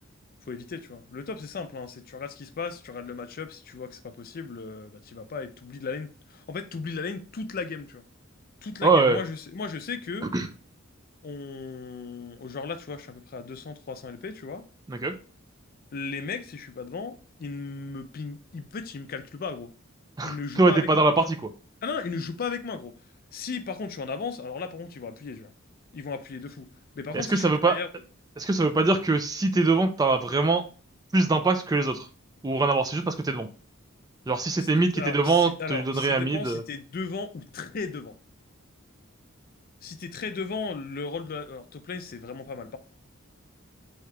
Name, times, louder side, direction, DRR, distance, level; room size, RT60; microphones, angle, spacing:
voice 1, 0.5-8.0 8.6-10.3 11.2-14.6 15.9-19.7 20.2-21.3 21.8-22.9 23.3-25.5 25.9-27.9 34.6-38.2 39.8-42.8, left 4 dB, 45° left, 0.4 m, -36 dB
voice 2, 8.8-9.2 10.3-10.5 14.9-15.2 20.2-21.2 27.1-27.8 28.4-30.6 31.1-32.1 32.4-33.5 34.3-36.6, right 3 dB, 20° right, 0.3 m, -23 dB
3.3 x 2.8 x 4.6 m
head